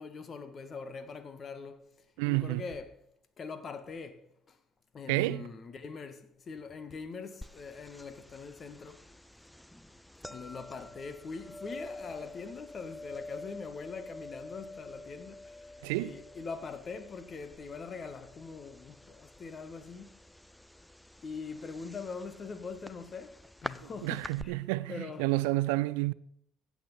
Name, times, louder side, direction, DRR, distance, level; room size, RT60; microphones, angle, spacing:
voice 1, 0.0-1.9 2.2-3.0 3.4-4.6 4.9-9.1 10.3-20.2 21.2-24.6 24.9-25.3, left 5 dB, 45° left, 1.6 m, -43 dB
voice 2, 2.2-2.6 5.1-5.4 15.8-16.1 24.0-26.1, right 20 dB, 75° right, 0.4 m, -30 dB
sound 1, 7.4-24.4, left 1 dB, 5° left, 0.5 m, -48 dB
15.0 x 8.0 x 5.4 m
hypercardioid pair, 55°, 0 cm